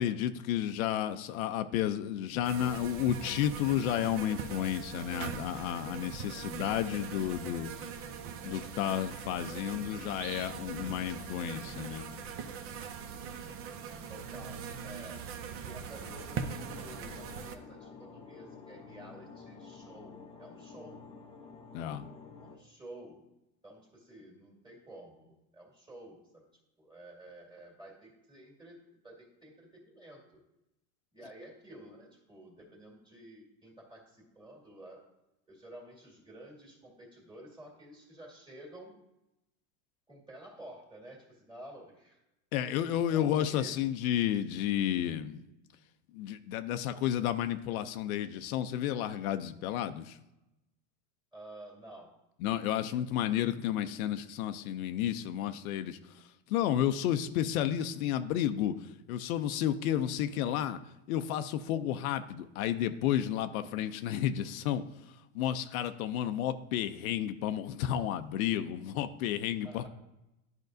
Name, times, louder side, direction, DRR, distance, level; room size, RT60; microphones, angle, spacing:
voice 1, 0.0-7.7 8.4-12.1 21.7-22.1 42.5-45.4 46.1-50.2 52.4-60.8 61.1-64.8 65.3-69.9, left 11 dB, 80° left, 10 dB, 0.6 m, -32 dB
sound 1, 2.4-17.6, right 6 dB, 35° right, 0.5 m, -41 dB
voice 2, 14.1-15.3 15.6-21.0 22.4-23.2 23.6-26.5 26.8-30.4 31.1-35.1 35.5-39.0 40.1-42.2 43.1-43.8 51.3-52.2 69.6-69.9, right 1 dB, 10° right, -2 dB, 2.0 m, -51 dB
sound 2, 15.9-22.6, left 5 dB, 15° left, 0.4 m, -50 dB
10.5 x 5.3 x 2.6 m, 0.92 s
supercardioid pair, 135°, 41 cm